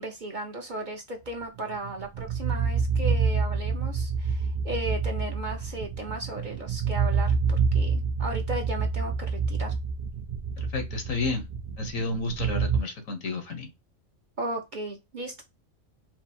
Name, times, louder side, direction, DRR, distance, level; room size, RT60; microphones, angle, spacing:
voice 1, 0.0-9.7 14.4-15.4, right 1 dB, 45° right, 0.8 m, -35 dB
sound 1, 1.7-12.8, right 5 dB, 75° right, 0.4 m, -27 dB
voice 2, 10.6-11.5 11.8-13.7, left 3 dB, 85° left, 1.5 m, -31 dB
4.6 x 2.0 x 4.1 m
omnidirectional pair, 1.4 m